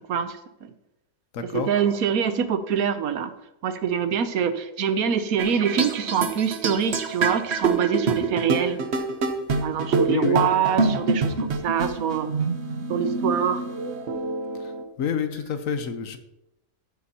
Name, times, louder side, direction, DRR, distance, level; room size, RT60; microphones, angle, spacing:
voice 1, 0.1-0.7 1.5-3.3 3.6-8.8 9.6-12.3 12.9-13.7, right 7 dB, 90° right, 11 dB, 1.3 m, -25 dB
voice 2, 1.3-1.7 10.1-10.4 15.0-16.2, left 7 dB, 70° left, 9 dB, 1.3 m, -27 dB
sound 1, 5.4-14.8, right 3 dB, 55° right, 1.2 m, -26 dB
13.0 x 9.5 x 2.9 m, 0.88 s
omnidirectional pair, 1.5 m